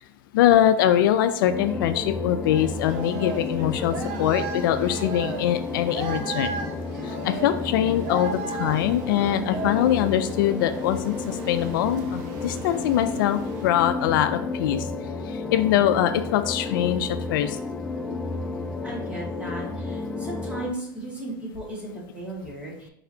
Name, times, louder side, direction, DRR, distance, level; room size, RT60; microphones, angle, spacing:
voice 1, 0.3-6.5 7.0-14.8 15.5-17.6, left 11 dB, 70° left, 10 dB, 0.4 m, -23 dB
sound 1, 1.5-20.7, left 3 dB, 5° left, 0.4 m, -32 dB
sound 2, 2.5-13.7, right 5 dB, 60° right, 0.7 m, -37 dB
voice 2, 18.8-22.9, right 2 dB, 10° right, -5 dB, 1.8 m, -36 dB
4.6 x 3.9 x 2.8 m, 0.75 s
supercardioid pair, 135°, 11 cm